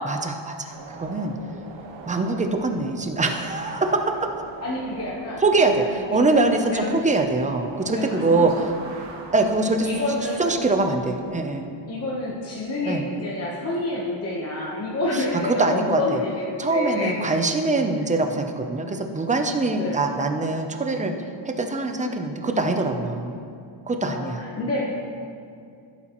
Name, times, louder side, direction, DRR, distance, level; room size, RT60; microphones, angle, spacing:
voice 1, 0.0-1.3 2.1-4.3 5.4-8.5 9.3-9.9 10.4-11.7 12.9-13.1 15.1-16.2 16.6-21.1 21.5-23.4 23.9-24.4, right 3 dB, 15° right, 5 dB, 0.5 m, -23 dB
sound 1, 0.7-11.4, right 3 dB, 70° right, 1.3 m, -41 dB
voice 2, 4.6-5.4 6.1-6.2 6.7-7.0 7.9-8.5 9.8-10.6 11.9-17.1 19.7-20.0 24.0-24.8, left 2 dB, 30° left, -4 dB, 1.0 m, -28 dB
15.5 x 8.5 x 3.0 m, 2.5 s
wide cardioid pair, 170°, 48 cm